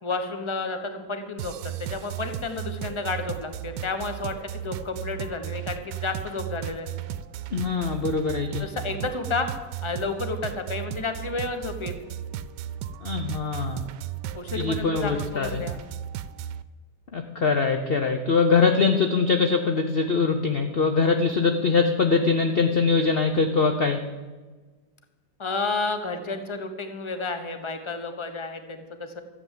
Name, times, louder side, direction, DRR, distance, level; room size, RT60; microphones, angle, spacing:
voice 1, 0.0-6.9 8.6-9.5 9.8-12.0 14.3-15.8 25.4-29.2, left 3 dB, 20° left, 7 dB, 1.1 m, -31 dB
sound 1, 1.4-16.6, right 11 dB, 85° right, 1.2 m, -35 dB
voice 2, 7.5-8.7 13.0-13.8 14.5-15.6 17.1-24.0, left 4 dB, 45° left, 5 dB, 0.9 m, -23 dB
14.0 x 8.7 x 7.6 m, 1.3 s
omnidirectional pair, 1.8 m